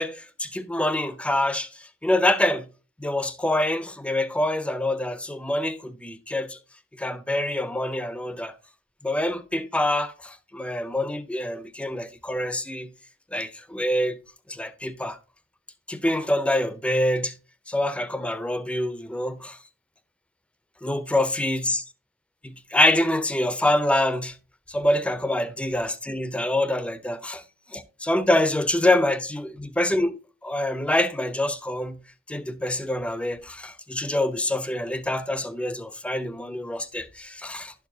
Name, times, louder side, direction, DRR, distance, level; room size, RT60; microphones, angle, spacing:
voice 1, 0.0-1.7 2.0-2.7 3.0-6.6 7.0-8.5 9.0-12.9 13.3-14.2 14.5-15.2 15.9-17.3 17.7-19.6 20.8-21.8 22.4-24.3 24.7-27.4 27.7-30.1 30.4-32.0 32.3-37.7, left 1 dB, 5° left, 0.4 m, -25 dB
11.5 x 4.6 x 2.7 m
head